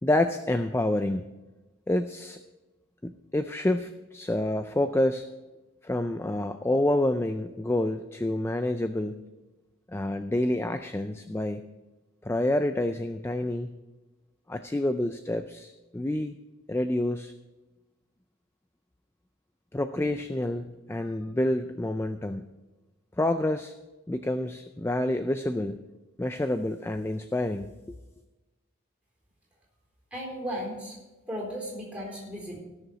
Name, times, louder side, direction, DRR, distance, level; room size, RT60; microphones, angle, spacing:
voice 1, 0.0-1.3 1.9-2.4 3.0-5.2 5.8-9.2 9.9-11.6 12.2-13.7 14.5-16.3 16.7-17.3 19.7-22.4 23.2-23.7 24.1-25.8 26.2-28.0, left 1 dB, 10° left, 9 dB, 0.3 m, -28 dB
voice 2, 30.1-31.0 31.3-32.6, equal, 5° right, -3 dB, 3.9 m, -35 dB
17.0 x 6.8 x 4.9 m, 1.1 s
head